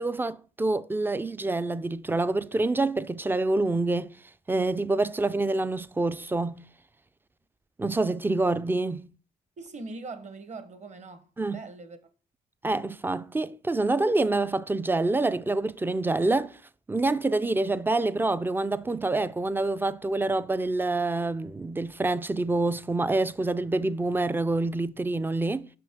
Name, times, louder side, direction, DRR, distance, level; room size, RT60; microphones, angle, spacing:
voice 1, 0.0-4.1 4.5-6.6 7.8-9.1 11.4-11.6 12.6-16.6 16.9-25.7, right 2 dB, 10° right, 0.3 m, -26 dB
voice 2, 9.6-12.0, right 3 dB, 35° right, 0.9 m, -41 dB
5.8 x 5.4 x 3.5 m
cardioid pair, 90°, 20 cm